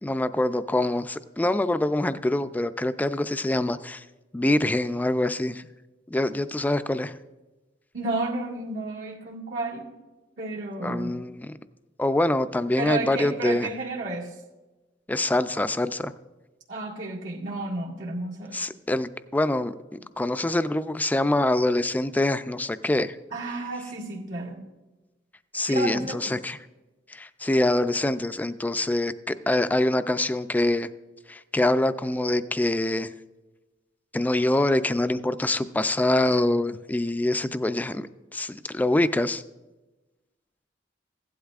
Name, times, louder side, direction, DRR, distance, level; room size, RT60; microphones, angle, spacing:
voice 1, 0.0-4.1 4.3-5.7 6.1-7.2 10.8-11.5 12.0-13.7 15.1-16.1 18.5-23.2 25.5-26.6 27.1-30.9 31.3-33.1 34.1-39.4, left 1 dB, 10° left, 12 dB, 0.3 m, -25 dB
voice 2, 7.9-9.9 10.4-11.2 12.8-14.4 16.7-18.7 23.3-24.7 25.6-26.3, right 2 dB, 85° right, -4 dB, 1.9 m, -32 dB
16.0 x 11.5 x 2.4 m, 1.1 s
head